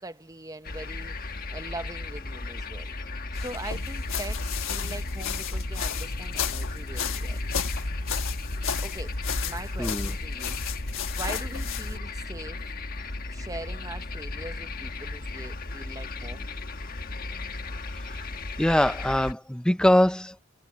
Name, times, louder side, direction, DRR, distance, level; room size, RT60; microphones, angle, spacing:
voice 1, 0.0-2.9 3.3-7.5 8.8-9.2 9.4-10.6 11.2-12.6 13.3-16.5, right 2 dB, 15° right, 0.9 m, -41 dB
sound 1, 0.6-19.3, left 2 dB, 45° left, 1.3 m, -36 dB
sound 2, 3.3-12.0, left 4 dB, 70° left, 1.3 m, -32 dB
voice 2, 9.8-10.1 18.2-18.3 18.6-20.4, left 1 dB, 5° left, 0.5 m, -23 dB
head